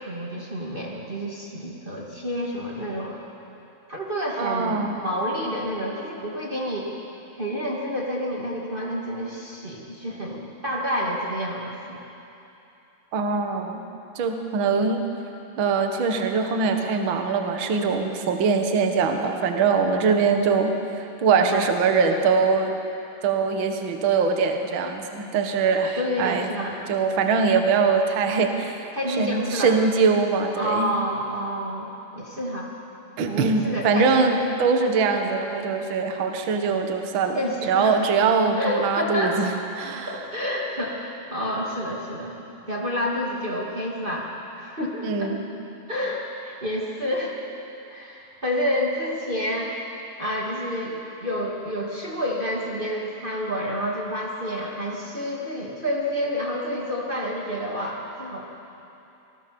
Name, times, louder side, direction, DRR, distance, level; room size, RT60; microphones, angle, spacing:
voice 1, 0.0-3.2 3.9-6.9 7.4-12.0 21.5-21.7 26.0-26.8 28.9-29.7 30.6-32.7 33.3-34.4 37.3-38.0 38.6-39.5 40.1-42.3 42.7-44.3 44.5-45.3 45.9-47.4 47.9-49.7 50.2-58.4, equal, 15° right, -4 dB, 1.8 m, -29 dB
voice 2, 4.4-5.0 13.1-13.8 14.1-15.1 15.6-22.7 23.2-26.5 26.9-28.9 29.2-30.9 33.2-40.1 45.0-45.5, right 5 dB, 70° right, 5 dB, 1.1 m, -22 dB
26.0 x 19.5 x 7.0 m, 2.8 s
omnidirectional pair, 4.8 m